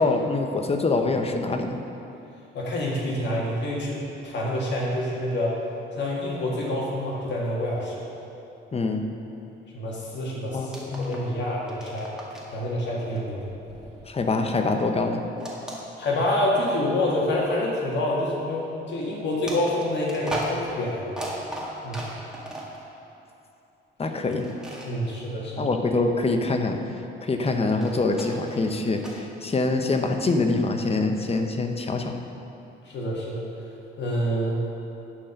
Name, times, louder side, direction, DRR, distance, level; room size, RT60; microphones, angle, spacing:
voice 1, 0.0-1.8 8.7-9.1 10.5-11.2 14.1-15.2 24.0-24.5 25.6-26.8 27.2-32.2, left 3 dB, 30° left, 5 dB, 0.9 m, -25 dB
voice 2, 2.5-5.6 5.9-8.0 9.7-12.1 12.5-13.5 16.0-21.1 21.8-22.1 24.8-25.7 32.8-33.4 34.0-34.6, left 1 dB, 65° left, -4 dB, 1.9 m, -27 dB
sound 1, 10.7-11.4 11.6-12.6 13.1-14.6 15.4-16.5 17.1-17.2 19.4-22.8 24.3-24.9 27.5-29.2, right 1 dB, 5° right, 1.8 m, -37 dB
11.0 x 4.6 x 6.6 m, 2.9 s
cardioid pair, 90°, 20 cm